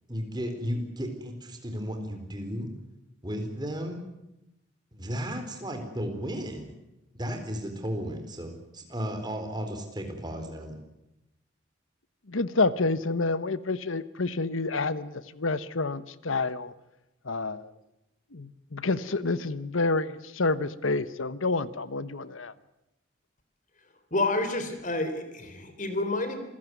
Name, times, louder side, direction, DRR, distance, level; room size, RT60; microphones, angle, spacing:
voice 1, 0.1-2.8 3.2-4.0 4.9-6.7 7.1-10.8, equal, 20° right, 5 dB, 4.1 m, -34 dB
voice 2, 12.3-16.7 17.2-17.7 18.3-22.5, left 3 dB, 90° left, 15 dB, 1.2 m, -28 dB
voice 3, 24.1-26.4, left 2 dB, 40° left, 9 dB, 3.7 m, -29 dB
27.0 x 16.5 x 9.5 m, 0.90 s
head